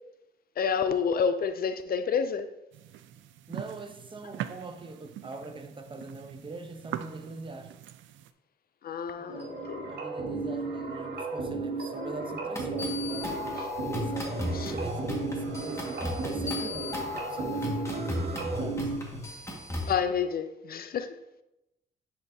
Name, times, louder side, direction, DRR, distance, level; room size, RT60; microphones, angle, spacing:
voice 1, 0.6-2.5 8.8-9.9 14.6-14.7 19.9-21.2, left 6 dB, 50° left, 0.4 m, -29 dB
sound 1, 2.7-8.3, right 11 dB, 75° right, 0.4 m, -42 dB
voice 2, 3.5-7.8 9.2-13.4 14.0-19.0, right 3 dB, 25° right, 0.8 m, -43 dB
sound 2, 9.3-19.0, right 3 dB, 55° right, 1.5 m, -34 dB
sound 3, 12.6-19.9, left 2 dB, 15° left, 1.7 m, -35 dB
10.0 x 4.3 x 2.7 m
cardioid pair, 90°, 20 cm